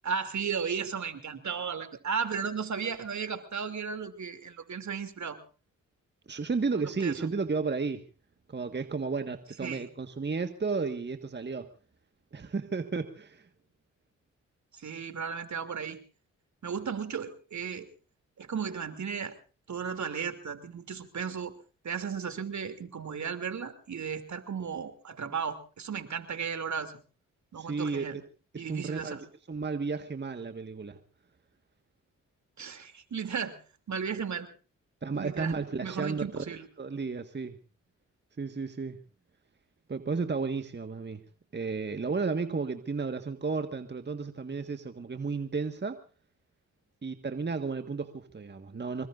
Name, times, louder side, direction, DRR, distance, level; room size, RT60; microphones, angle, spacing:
voice 1, 0.0-5.4 6.7-7.3 9.6-9.9 14.7-16.0 16.6-17.9 18.4-19.3 19.7-21.5 21.8-26.9 27.5-28.2 28.6-29.2 32.6-33.6 33.9-34.5 35.1-36.6, right 6 dB, 60° right, 9 dB, 2.9 m, -35 dB
voice 2, 6.3-8.1 8.5-11.7 12.3-13.5 27.6-28.2 28.5-29.2 29.5-31.0 35.0-36.4 36.8-37.6 38.4-39.0 39.9-41.2 41.5-46.0 47.0-49.1, right 4 dB, 30° right, 8 dB, 1.6 m, -33 dB
25.5 x 22.0 x 2.6 m, 0.37 s
supercardioid pair, 55°, 33 cm